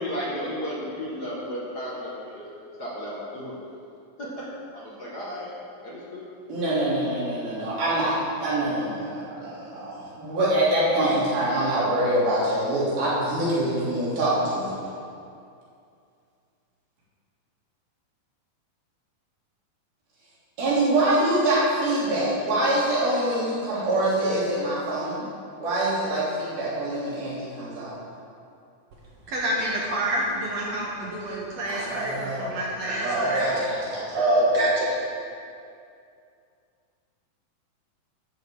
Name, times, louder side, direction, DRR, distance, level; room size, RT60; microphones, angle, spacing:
voice 1, 0.0-2.4 2.8-3.5 4.2-5.5 5.8-6.2, equal, 40° left, -6 dB, 1.6 m, -34 dB
voice 2, 6.5-14.7 20.6-25.3 25.6-28.0 31.7-32.5 33.0-33.8, right 1 dB, 75° right, -9 dB, 5.2 m, -25 dB
voice 3, 29.3-33.7 34.1-34.9, right 1 dB, 60° right, -4 dB, 2.0 m, -26 dB
13.5 x 10.5 x 3.9 m, 2.4 s
omnidirectional pair, 4.2 m